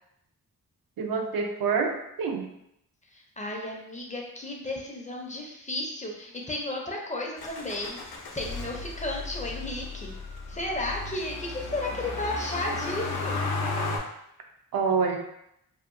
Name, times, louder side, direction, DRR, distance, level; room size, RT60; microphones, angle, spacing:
voice 1, 1.0-2.5 14.7-15.2, right 5 dB, 70° right, 3 dB, 0.5 m, -27 dB
voice 2, 3.1-10.1 10.5-13.5, left 1 dB, 20° left, -1 dB, 0.4 m, -34 dB
Motor vehicle (road), 7.4-14.0, left 3 dB, 90° left, 0.5 m, -34 dB
2.7 x 2.1 x 2.5 m, 0.79 s
wide cardioid pair, 100°, 36 cm